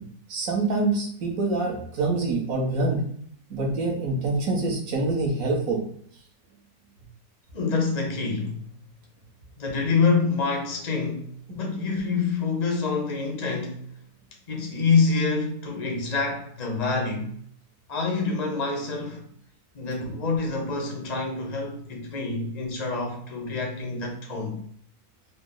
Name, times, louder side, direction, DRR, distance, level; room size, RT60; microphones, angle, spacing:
voice 1, 0.3-3.0 3.5-5.8, right 3 dB, 65° right, 1.4 m, -25 dB
voice 2, 7.5-8.6 9.6-13.8 14.5-17.3 17.9-19.2 19.7-24.6, left 4 dB, 40° left, 0.6 m, -26 dB
3.8 x 2.1 x 3.7 m
omnidirectional pair, 1.7 m